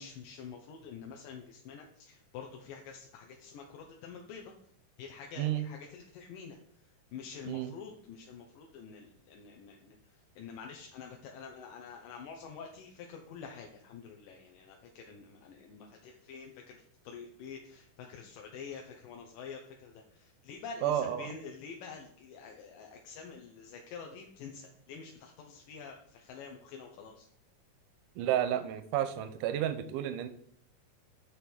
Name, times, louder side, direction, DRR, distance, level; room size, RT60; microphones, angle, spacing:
voice 1, 0.0-4.5 5.0-6.6 7.1-10.0 10.4-27.3, left 6 dB, 85° left, 1 dB, 2.5 m, -47 dB
voice 2, 5.4-5.7 7.5-7.7 20.8-21.3 28.2-30.3, right 11 dB, 85° right, 11 dB, 2.2 m, -31 dB
7.0 x 6.2 x 4.4 m, 0.65 s
omnidirectional pair, 3.8 m